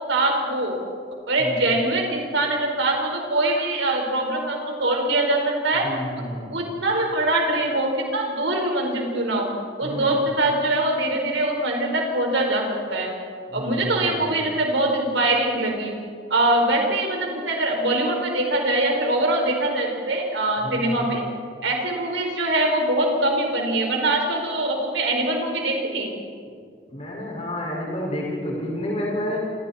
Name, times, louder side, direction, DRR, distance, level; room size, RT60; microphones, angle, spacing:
voice 1, 0.1-0.8 1.3-5.9 6.5-9.5 9.8-12.6 12.9-13.1 13.5-15.9 16.3-21.2 21.6-26.2, right 2 dB, 80° right, 1 dB, 4.8 m, -23 dB
voice 2, 5.8-6.5 9.8-10.2 13.5-14.5 20.6-21.1 26.9-29.4, left 1 dB, 35° left, -3 dB, 5.4 m, -30 dB
28.0 x 27.5 x 4.4 m, 2.2 s
head